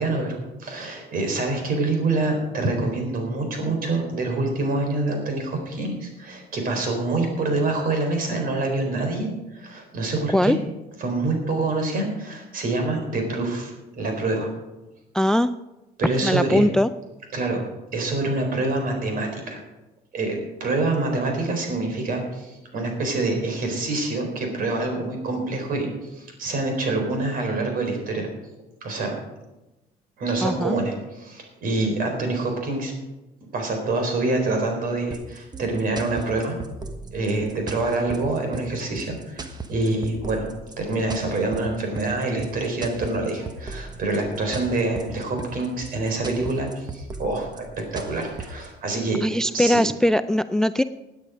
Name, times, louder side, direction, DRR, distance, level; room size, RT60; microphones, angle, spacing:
voice 1, 0.0-9.3 9.5-10.6 11.0-14.5 16.0-16.6 17.3-17.6 17.9-19.6 20.1-28.3 28.8-29.2 30.2-32.9 33.5-36.6 37.1-40.5 40.8-47.6 47.9-49.2 49.5-49.8, right 2 dB, 55° right, 4 dB, 4.3 m, -26 dB
voice 2, 15.1-15.5 16.2-16.9 30.4-30.8 49.2-50.8, left 1 dB, 5° left, 13 dB, 0.3 m, -20 dB
sound 1, 35.1-48.7, right 3 dB, 25° right, 1.2 m, -37 dB
17.5 x 9.2 x 5.1 m, 1.0 s
cardioid pair, 110°, 17 cm